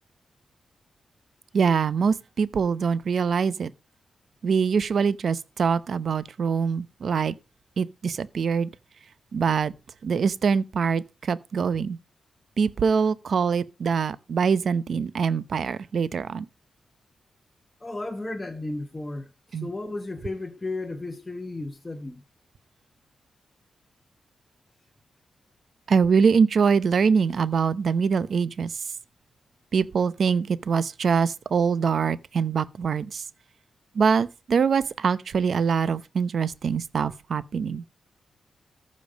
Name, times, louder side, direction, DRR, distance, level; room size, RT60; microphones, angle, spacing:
voice 1, 1.5-3.7 4.4-7.3 7.8-8.7 9.3-9.7 10.0-12.0 12.6-16.5 19.5-19.7 25.9-28.7 29.7-33.2 33.9-37.8, right 6 dB, 55° right, 0.7 m, -24 dB
voice 2, 17.8-19.3 19.6-22.2, left 2 dB, 15° left, 1.0 m, -34 dB
14.0 x 5.3 x 5.0 m
wide cardioid pair, 140°, 0 cm